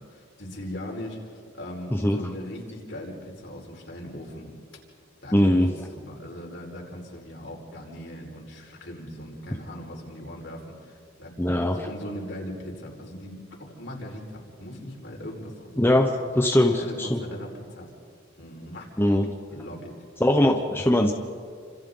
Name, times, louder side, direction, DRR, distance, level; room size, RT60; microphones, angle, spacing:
voice 1, 0.0-4.5 5.2-15.8 16.4-16.5 16.7-17.9 18.4-18.9 19.5-19.9, equal, 65° left, -1 dB, 4.8 m, -39 dB
voice 2, 5.3-5.7 11.4-11.8 15.8-17.2 19.0-19.3 20.2-21.1, left 1 dB, 10° left, 3 dB, 1.1 m, -21 dB
30.0 x 26.5 x 4.0 m, 2.1 s
head